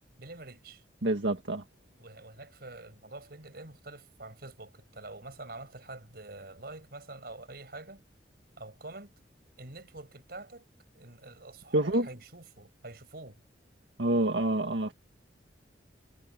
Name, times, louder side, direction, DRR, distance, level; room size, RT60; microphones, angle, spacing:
voice 1, 0.2-0.8 2.0-8.0 8.6-9.1 9.6-10.6 10.9-13.4, right 2 dB, 60° right, 5.8 m, -46 dB
voice 2, 1.0-1.6 11.7-12.1 14.0-14.9, right 1 dB, 85° right, 1.8 m, -27 dB
head